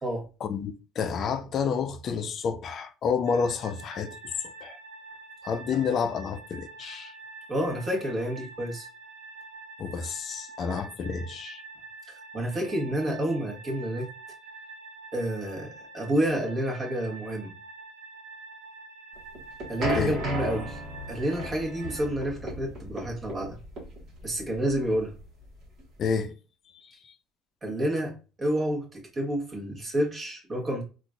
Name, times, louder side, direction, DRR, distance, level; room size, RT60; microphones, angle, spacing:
voice 1, 0.4-4.2 4.4-4.8 5.4-7.1 9.8-11.6 19.9-20.2 26.0-26.3, left 6 dB, 40° left, 0.4 m, -29 dB
sound 1, 3.2-22.1, right 3 dB, 80° right, 0.8 m, -46 dB
voice 2, 7.5-8.9 12.1-14.1 15.1-17.5 19.7-20.8 21.1-23.6 24.2-25.1 27.6-30.8, right 1 dB, 25° right, 1.3 m, -29 dB
sound 2, 19.2-26.0, right 1 dB, 45° right, 1.3 m, -35 dB
3.7 x 2.5 x 2.2 m
cardioid pair, 125°, 0 cm